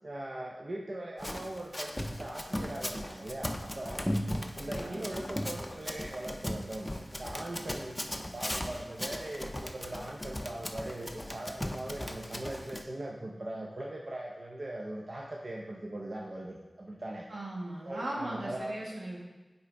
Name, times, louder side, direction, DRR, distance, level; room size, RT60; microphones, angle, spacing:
voice 1, 0.0-4.1 4.6-17.3 17.8-18.8, right 1 dB, 55° right, -1 dB, 0.6 m, -40 dB
Run, 1.2-12.8, left 1 dB, 20° left, 0.5 m, -37 dB
voice 2, 4.6-5.1 17.3-19.2, right 1 dB, 85° right, -3 dB, 1.4 m, -38 dB
8.9 x 3.9 x 3.4 m, 1.2 s
wide cardioid pair, 55°, 0 cm